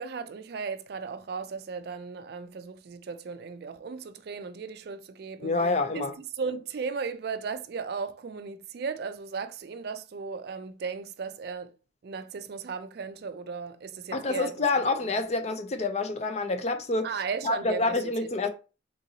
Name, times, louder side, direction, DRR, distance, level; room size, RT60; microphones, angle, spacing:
voice 1, 0.0-5.5 5.9-6.0 6.3-11.7 12.0-14.5 17.0-18.5, right 5 dB, 55° right, 0.3 m, -36 dB
voice 2, 5.4-6.1 14.1-17.1 17.4-18.5, left 3 dB, 35° left, 0.4 m, -27 dB
3.7 x 2.6 x 2.7 m
head